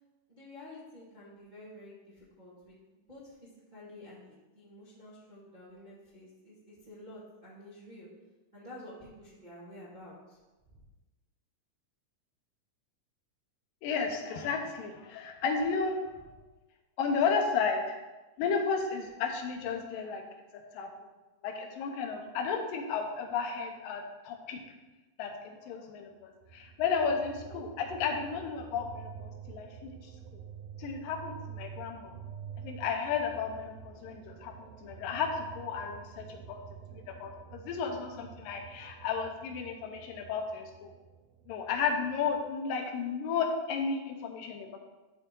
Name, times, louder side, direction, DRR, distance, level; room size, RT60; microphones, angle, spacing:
voice 1, 0.3-3.3 3.7-8.1 8.5-10.4 10.7-10.8 27.2-27.6, left 1 dB, 25° right, -8 dB, 0.9 m, -50 dB
voice 2, 13.8-16.0 17.0-18.0 18.4-20.2 20.5-20.9 21.4-24.6 25.2-30.0 30.8-32.1 32.6-36.6 36.9-40.9 41.5-44.8, left 5 dB, 85° left, 4 dB, 2.5 m, -33 dB
sound 1, 26.4-42.6, right 8 dB, 90° right, 1.5 m, -48 dB
12.0 x 4.0 x 3.7 m, 1.1 s
omnidirectional pair, 3.8 m